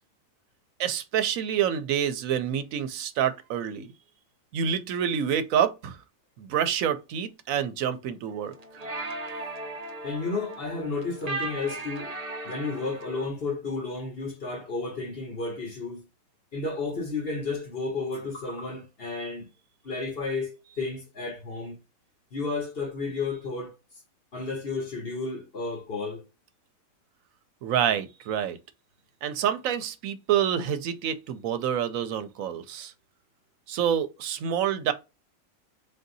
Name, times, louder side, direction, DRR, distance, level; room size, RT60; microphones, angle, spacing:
voice 1, 0.8-3.9 4.5-6.0 6.4-8.5 27.6-28.6 29.2-32.9 33.7-34.9, right 9 dB, 75° right, 1.0 m, -27 dB
sound 1, 8.3-13.3, right 2 dB, 35° right, 0.7 m, -37 dB
voice 2, 10.0-12.1 12.4-16.0 16.5-19.5 19.8-21.8 22.3-23.7 24.3-26.2, left 3 dB, 45° left, 1.4 m, -32 dB
3.7 x 2.7 x 3.9 m
omnidirectional pair, 1.4 m